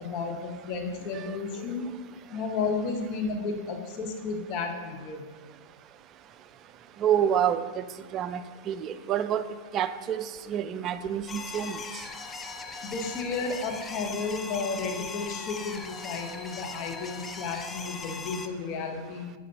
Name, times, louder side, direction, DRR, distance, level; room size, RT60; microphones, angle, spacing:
voice 1, 0.0-1.9 2.3-5.3 12.8-19.3, left 4 dB, 45° left, 3 dB, 1.0 m, -33 dB
voice 2, 7.0-7.8 8.1-9.4 9.7-11.8, right 9 dB, 35° right, 12 dB, 0.4 m, -28 dB
sound 1, 11.3-18.5, left 4 dB, 15° left, 0.5 m, -39 dB
9.2 x 5.0 x 2.9 m, 1.5 s
hypercardioid pair, 100°, 0 cm